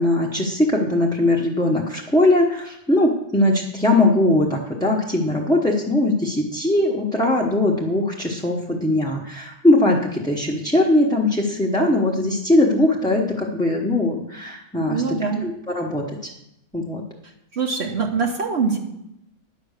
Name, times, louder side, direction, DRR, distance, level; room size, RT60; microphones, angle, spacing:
voice 1, 0.0-16.2 16.7-17.0, left 1 dB, 5° left, -3 dB, 0.9 m, -20 dB
voice 2, 14.8-15.5 17.5-18.8, right 5 dB, 60° right, 1 dB, 1.2 m, -23 dB
10.5 x 5.9 x 6.6 m, 0.83 s
omnidirectional pair, 1.3 m